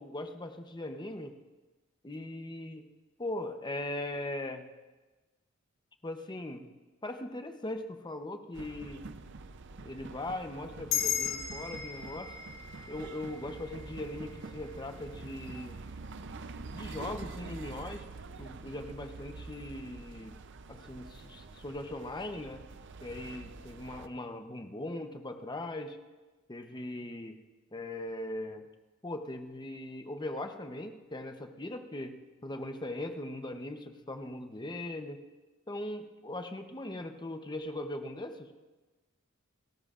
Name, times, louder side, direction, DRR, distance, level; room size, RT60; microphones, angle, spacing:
voice 1, 0.0-1.3 2.0-2.9 3.2-4.6 6.0-6.7 7.0-9.0 9.8-12.3 12.9-15.8 16.7-18.0 18.4-20.3 20.7-22.6 23.0-26.0 26.5-27.4 27.7-28.7 29.0-32.1 32.4-35.2 35.7-38.5, left 1 dB, 20° left, 6 dB, 0.8 m, -39 dB
sound 1, 8.5-24.1, right 3 dB, 60° right, 0.6 m, -46 dB
sound 2, 10.9-15.6, left 9 dB, 75° left, 4.8 m, -37 dB
29.5 x 14.0 x 2.5 m, 1.2 s
head